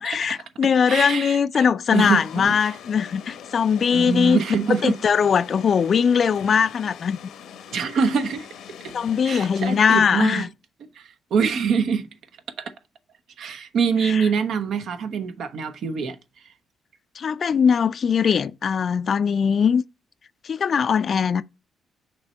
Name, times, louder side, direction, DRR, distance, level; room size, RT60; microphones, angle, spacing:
voice 1, 0.0-4.4 4.7-7.2 8.9-10.5 14.0-14.3 17.2-19.8 20.4-21.4, left 7 dB, 50° left, 0.4 m, -20 dB
voice 2, 0.9-2.7 3.9-5.0 7.7-8.5 8.8-8.9 9.2-10.5 11.0-12.1 12.6-12.7 13.4-16.2, right 6 dB, 70° right, 0.9 m, -25 dB
sound 1, 1.9-10.0, left 8 dB, 80° left, 1.0 m, -42 dB
6.0 x 3.3 x 5.2 m
cardioid pair, 90°, 0 cm